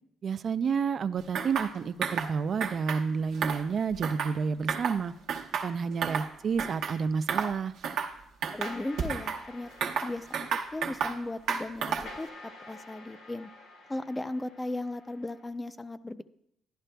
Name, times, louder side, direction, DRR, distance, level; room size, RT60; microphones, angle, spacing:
voice 1, 0.2-5.1 5.6-7.7, right 6 dB, 55° right, 12 dB, 0.3 m, -30 dB
sound 1, 1.3-1.7 2.0-2.3 2.6-3.0 3.3-4.4 4.7-5.0 5.3-6.3 6.6-7.0 7.3-7.5 7.8-8.1 8.4-9.4 9.8-11.2 11.5-12.2, right 6 dB, 80° right, 0.9 m, -31 dB
voice 2, 8.5-12.3 12.7-13.5 13.9-16.2, left 2 dB, 15° left, 12 dB, 0.4 m, -37 dB
sound 2, 8.6-15.5, left 2 dB, 80° left, 3.5 m, -49 dB
11.5 x 11.0 x 2.2 m, 0.76 s
cardioid pair, 90°, 0 cm